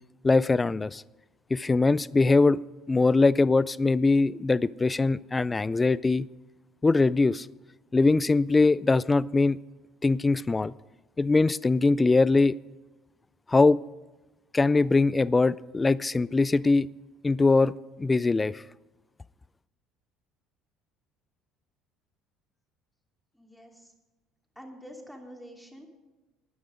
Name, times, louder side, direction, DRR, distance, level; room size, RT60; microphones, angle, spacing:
voice 1, 0.2-1.0 1.5-2.6 2.9-6.3 6.8-7.5 7.9-9.6 10.0-10.7 11.2-12.6 13.5-13.8 14.5-16.9 17.2-17.7 18.0-18.6, left 3 dB, 20° left, 20 dB, 0.3 m, -22 dB
voice 2, 23.3-23.9 24.5-25.9, equal, ahead, 1 dB, 2.8 m, -46 dB
13.5 x 9.6 x 5.1 m, 1.1 s
supercardioid pair, 100°, 0 cm